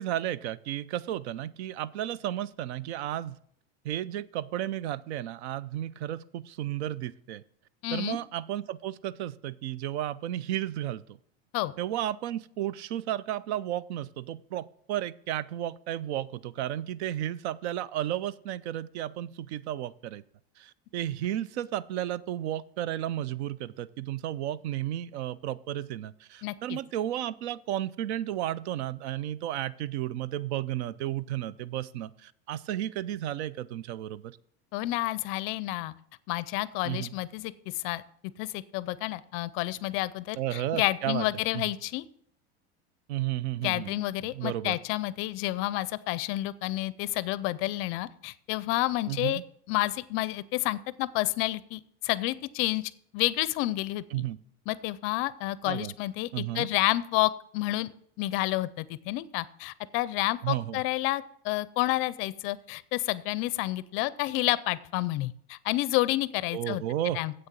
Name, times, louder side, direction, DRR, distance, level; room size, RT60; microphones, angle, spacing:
voice 1, 0.0-3.4 3.8-7.4 7.9-11.2 11.8-20.2 20.6-34.4 36.8-37.1 40.4-41.2 41.5-41.6 43.1-44.0 44.3-44.8 49.1-49.4 54.1-54.4 55.6-55.9 56.3-56.7 60.4-60.8 66.5-67.2, right 12 dB, 80° right, 20 dB, 0.6 m, -33 dB
voice 2, 7.8-8.2 11.5-11.7 26.4-26.8 34.7-35.9 36.3-38.0 38.4-42.0 43.6-49.4 49.7-54.2 54.7-57.9 58.2-66.8 67.1-67.3, left 18 dB, 40° left, 18 dB, 0.4 m, -30 dB
7.9 x 6.6 x 7.4 m, 0.65 s
supercardioid pair, 155°, 32 cm